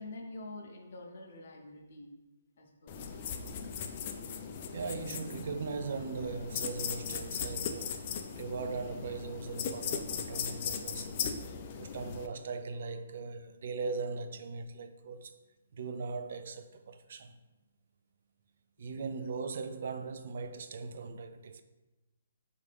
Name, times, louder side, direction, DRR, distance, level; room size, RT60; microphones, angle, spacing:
voice 1, 0.0-2.2 2.6-3.2 18.9-19.3, left 2 dB, 60° left, 0.7 m, -47 dB
sound 1, 2.9-12.3, left 7 dB, 40° left, 0.3 m, -38 dB
voice 2, 4.7-8.0 8.4-11.2 11.8-15.3 15.7-17.4 18.8-21.6, right 4 dB, 60° right, 0.3 m, -39 dB
4.5 x 2.5 x 3.4 m
hypercardioid pair, 150°, 0 cm